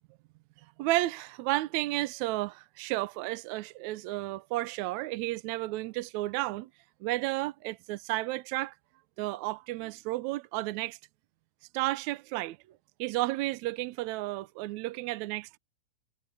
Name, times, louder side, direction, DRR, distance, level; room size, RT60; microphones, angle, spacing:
voice 1, 0.8-6.7 7.0-8.7 9.2-11.0 11.7-12.6 13.0-15.6, right 18 dB, 75° right, 1.9 m, -32 dB
omnidirectional pair, 3.5 m